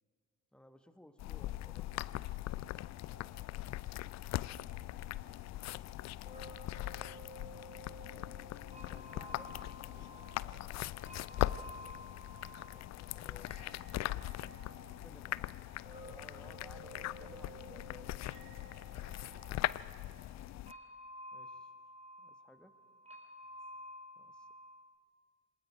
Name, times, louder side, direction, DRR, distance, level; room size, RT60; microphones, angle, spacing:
voice 1, 0.5-1.9 8.7-9.5 9.9-10.1 12.7-13.9 15.0-15.5 16.0-18.1 21.3-21.7 22.2-22.7 24.2-24.5, left 1 dB, ahead, 9 dB, 1.4 m, -59 dB
sound 1, 1.2-20.7, left 15 dB, 45° left, 0.5 m, -41 dB
voice 2, 3.1-5.9 9.1-13.1 14.6-16.5 17.1-17.9 21.3-21.8 23.4-23.9, right 2 dB, 45° right, 1 dB, 4.3 m, -68 dB
Boom, 4.6-12.4, left 8 dB, 70° left, 3.0 m, -62 dB
sound 2, 6.2-24.9, equal, 15° right, 3.5 m, -53 dB
27.0 x 20.0 x 5.0 m, 2.2 s
figure-of-eight pair, 40°, 40 cm